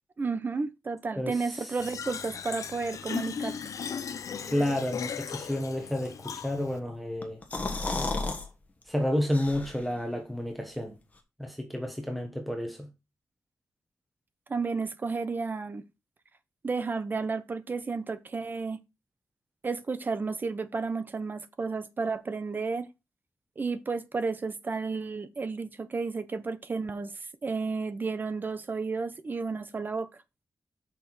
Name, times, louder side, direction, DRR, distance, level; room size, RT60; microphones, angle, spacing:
voice 1, 0.2-3.6 14.5-15.8 16.6-18.8 19.6-22.9 23.6-27.1 27.4-30.1, right 4 dB, 30° right, 0.7 m, -32 dB
voice 2, 1.2-1.7 4.5-7.4 8.9-10.9 11.4-12.9, left 1 dB, ahead, 1.3 m, -30 dB
Fill (with liquid), 1.8-6.8, left 7 dB, 60° left, 0.7 m, -37 dB
sound 1, 7.2-8.5 8.8-8.9 9.3-10.0, left 3 dB, 25° left, 1.3 m, -32 dB
6.7 x 5.7 x 4.8 m
wide cardioid pair, 170°, 6 cm